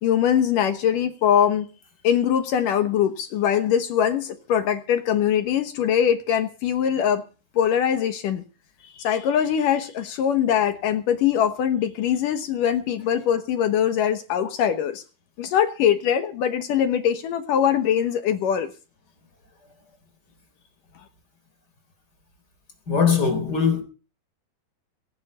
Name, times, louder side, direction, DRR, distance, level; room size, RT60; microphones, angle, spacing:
voice 1, 0.0-1.7 2.0-7.2 7.6-8.4 8.9-15.0 15.4-18.7, left 9 dB, 65° left, 2.5 m, -22 dB
voice 2, 22.9-23.8, left 6 dB, 25° left, 4.1 m, -20 dB
20.5 x 11.0 x 5.6 m
omnidirectional pair, 4.6 m